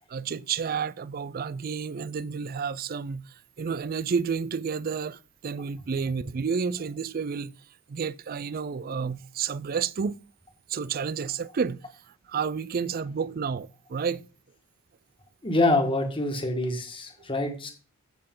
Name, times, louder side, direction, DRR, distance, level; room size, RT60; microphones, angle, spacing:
voice 1, 0.1-7.5 7.9-10.2 10.7-11.8 12.3-14.3, right 6 dB, 45° right, 0.4 m, -30 dB
voice 2, 15.4-17.7, left 2 dB, 25° left, 1.8 m, -25 dB
15.0 x 6.7 x 3.8 m
head